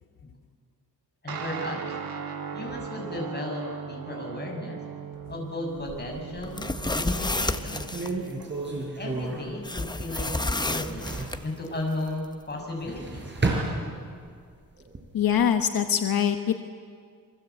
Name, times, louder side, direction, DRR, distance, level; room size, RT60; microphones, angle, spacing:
voice 1, 1.2-1.8 2.5-4.8 5.3-6.7 6.9-7.9 8.9-11.1 11.4-13.3, left 2 dB, 30° left, 1 dB, 6.7 m, -35 dB
Guitar, 1.3-9.0, right 7 dB, 80° right, 2.2 m, -38 dB
sound 1, 5.8-6.7 7.2-7.3 7.7-10.4 10.6-11.5 12.6-14.4 14.8-15.4, right 2 dB, 30° right, 5.7 m, -32 dB
sound 2, 6.4-8.1 9.6-11.4, left 2 dB, 10° left, 1.0 m, -30 dB
voice 2, 15.1-16.5, left 8 dB, 80° left, 6 dB, 1.3 m, -23 dB
28.0 x 24.0 x 8.4 m, 2.1 s
wide cardioid pair, 130°, 35 cm